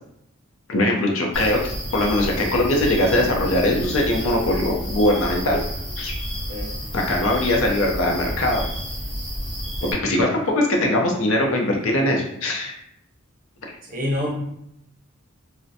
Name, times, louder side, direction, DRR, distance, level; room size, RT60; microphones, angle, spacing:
voice 1, 0.7-1.6 1.9-5.6 6.0-6.1 6.9-8.6 9.8-12.7, left 1 dB, 70° left, 1 dB, 0.5 m, -21 dB
sound 1, 1.3-9.9, equal, 25° left, 0.6 m, -30 dB
voice 2, 13.8-14.3, left 1 dB, 40° right, -3 dB, 0.7 m, -27 dB
2.5 x 2.1 x 2.6 m, 0.78 s
head